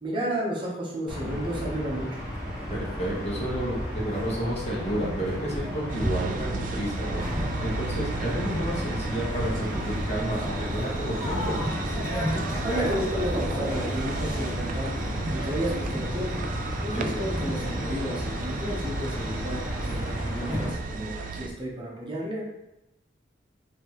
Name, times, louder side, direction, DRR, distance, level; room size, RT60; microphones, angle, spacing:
voice 1, 0.0-2.1 12.6-14.9 15.3-16.3 16.8-22.4, right 1 dB, 25° right, -4 dB, 0.8 m, -32 dB
sound 1, 1.1-20.7, equal, 5° right, 1.4 m, -31 dB
voice 2, 2.7-7.2 7.6-11.6 16.9-17.1, right 1 dB, 35° left, -5 dB, 1.2 m, -31 dB
sound 2, 5.9-21.5, right 4 dB, 45° right, 0.3 m, -35 dB
5.0 x 2.7 x 2.9 m, 0.91 s
head